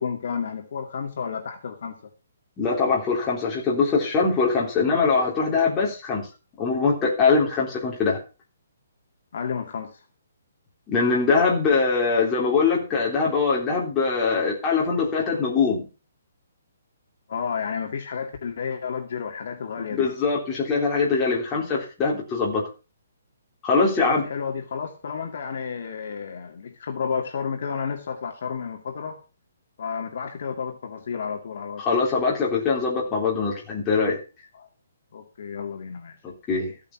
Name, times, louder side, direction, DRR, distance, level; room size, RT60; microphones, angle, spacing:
voice 1, 0.0-2.0 9.3-10.0 17.3-20.1 24.0-29.2 29.8-31.8 34.6-34.7 35.1-36.2, left 6 dB, 45° left, 4 dB, 2.2 m, -31 dB
voice 2, 2.6-6.3 6.6-8.2 10.9-15.9 19.9-22.6 23.6-24.3 31.8-34.2 36.2-36.7, left 4 dB, 10° left, -4 dB, 3.5 m, -22 dB
14.5 x 8.8 x 5.9 m, 0.33 s
hypercardioid pair, 180°, 0 cm